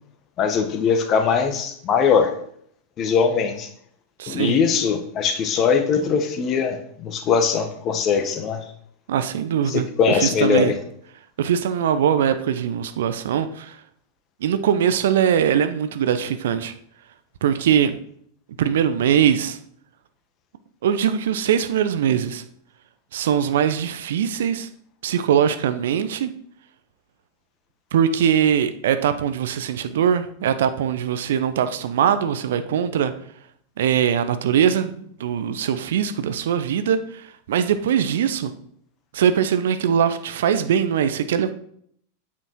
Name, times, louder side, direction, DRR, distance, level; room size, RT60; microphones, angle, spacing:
voice 1, 0.4-2.3 3.0-3.7 4.3-8.6 9.7-10.8, left 6 dB, 30° left, 7 dB, 1.5 m, -21 dB
voice 2, 4.2-4.6 9.1-10.7 11.4-13.8 14.4-16.7 17.4-18.0 18.6-19.6 20.8-22.4 23.1-24.7 25.0-26.3 27.9-33.1 33.8-38.5 39.1-41.5, right 8 dB, 60° right, 11 dB, 0.8 m, -21 dB
8.9 x 8.3 x 4.5 m, 0.66 s
figure-of-eight pair, 90°, 0 cm